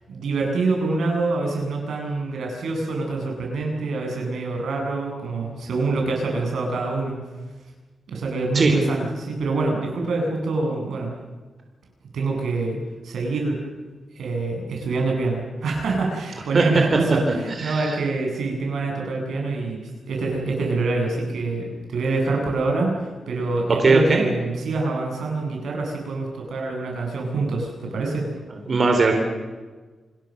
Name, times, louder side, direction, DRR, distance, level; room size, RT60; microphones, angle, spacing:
voice 1, 0.1-7.2 8.1-11.1 12.1-12.8 13.0-13.6 14.1-22.9 23.3-28.3, right 3 dB, 85° right, 0 dB, 8.0 m, -25 dB
voice 2, 17.6-18.0 23.8-24.2 28.7-29.1, right 3 dB, 40° right, 3 dB, 3.9 m, -18 dB
28.0 x 21.5 x 6.7 m, 1.3 s
wide cardioid pair, 140°, 0 cm